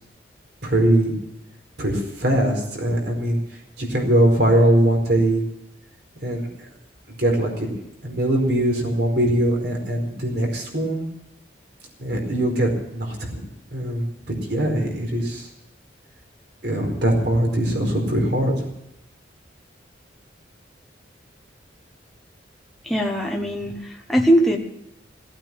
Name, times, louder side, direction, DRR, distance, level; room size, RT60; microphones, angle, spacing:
voice 1, 0.6-1.1 1.8-3.4 3.8-5.4 6.2-6.5 7.1-7.7 8.0-11.1 12.0-15.5 16.6-18.7, right 1 dB, 60° right, 1 dB, 4.5 m, -21 dB
voice 2, 22.8-24.6, equal, ahead, 0 dB, 1.2 m, -20 dB
16.5 x 8.9 x 8.8 m, 0.83 s
head